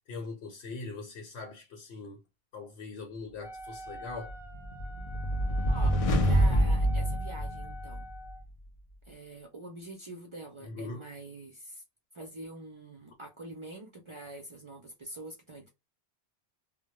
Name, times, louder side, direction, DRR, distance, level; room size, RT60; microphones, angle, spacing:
voice 1, 0.1-2.2 2.5-4.3 10.7-11.0, left 3 dB, 85° left, 1.0 m, -41 dB
Wind instrument woodwind instrument, 3.4-8.4, equal, 5° right, 0.7 m, -46 dB
sound 1, 4.3-8.1, equal, 60° left, 0.3 m, -26 dB
voice 2, 6.2-8.1 9.1-11.8 12.1-15.7, right 1 dB, 50° right, 0.3 m, -45 dB
2.1 x 2.0 x 2.8 m
omnidirectional pair, 1.1 m